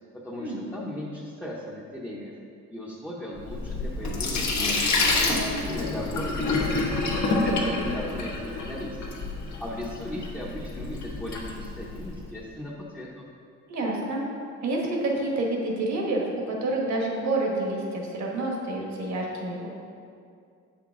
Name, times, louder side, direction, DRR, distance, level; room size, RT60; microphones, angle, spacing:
voice 1, 0.2-2.3 2.7-4.8 5.7-8.9 9.6-13.3, left 1 dB, 5° left, -6 dB, 0.7 m, -37 dB
Sink (filling or washing), 3.4-12.2, left 3 dB, 75° left, 1.2 m, -28 dB
voice 2, 5.1-5.6 13.7-14.2 14.6-19.7, right 2 dB, 70° right, -1 dB, 1.4 m, -28 dB
8.0 x 5.9 x 3.6 m, 2.4 s
cardioid pair, 145°, 29 cm